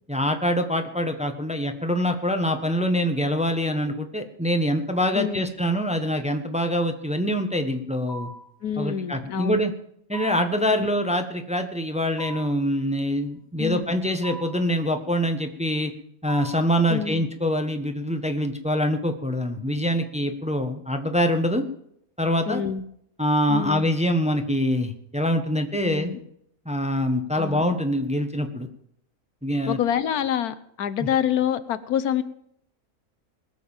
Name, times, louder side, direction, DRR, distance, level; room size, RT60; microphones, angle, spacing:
voice 1, 0.1-8.3 8.8-9.7 10.1-15.9 16.2-21.6 22.2-22.6 23.2-26.1 26.6-28.7 29.4-29.8, equal, 5° right, 6 dB, 1.1 m, -24 dB
voice 2, 5.1-5.5 8.6-9.6 10.8-10.9 13.6-13.9 16.9-17.3 22.5-22.8 23.5-23.9 25.8-26.2 27.3-27.6 29.7-32.2, left 9 dB, 90° left, 14 dB, 1.4 m, -27 dB
sound 1, 8.1-8.6 10.1-10.6 12.2-12.7 14.2-14.7 16.3-16.8, right 1 dB, 70° left, 2.1 m, -39 dB
20.5 x 7.2 x 7.3 m, 0.70 s
omnidirectional pair, 1.5 m